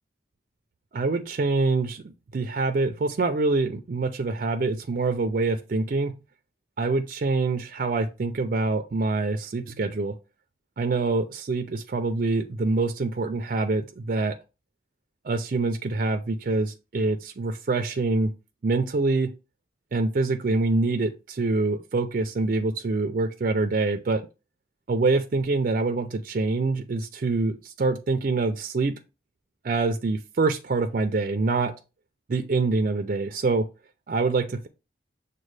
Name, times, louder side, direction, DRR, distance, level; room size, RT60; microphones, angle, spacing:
voice 1, 0.9-6.1 6.8-10.1 10.8-14.3 15.2-18.3 18.6-19.3 19.9-24.3 24.9-28.9 29.6-31.7 32.3-33.6 34.1-34.7, right 3 dB, 50° right, 0.4 m, -25 dB
6.3 x 2.2 x 3.2 m
head